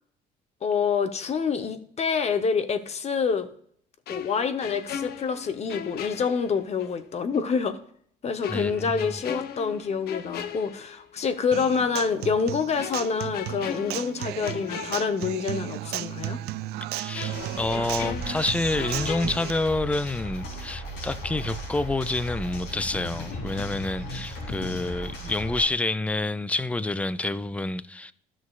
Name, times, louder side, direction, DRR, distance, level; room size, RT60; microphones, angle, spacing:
voice 1, 0.6-3.5 4.1-7.8 8.2-16.4, left 5 dB, 40° left, 0.8 m, -27 dB
sound 1, 4.1-7.0 7.3-7.5 8.4-11.4 11.7-11.9 12.8-15.8 16.1-16.2 17.1-20.2 20.4-20.7, left 8 dB, 65° left, 0.6 m, -38 dB
voice 2, 8.5-9.1 16.9-28.1, left 2 dB, 10° left, 0.3 m, -28 dB
Human voice / Acoustic guitar, 11.5-19.5, right 14 dB, 70° right, 0.4 m, -35 dB
sound 2, 17.3-25.7, equal, 85° left, 3.1 m, -36 dB
12.5 x 6.2 x 2.4 m
cardioid pair, 110°, 17 cm